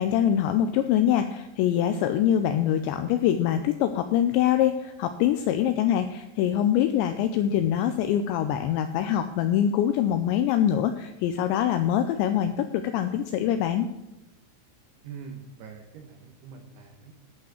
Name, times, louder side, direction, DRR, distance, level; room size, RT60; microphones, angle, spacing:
voice 1, 0.0-13.9, left 10 dB, 85° left, 9 dB, 2.6 m, -24 dB
voice 2, 15.0-17.1, right 6 dB, 75° right, 4 dB, 2.6 m, -43 dB
11.5 x 5.6 x 7.8 m, 0.95 s
omnidirectional pair, 5.7 m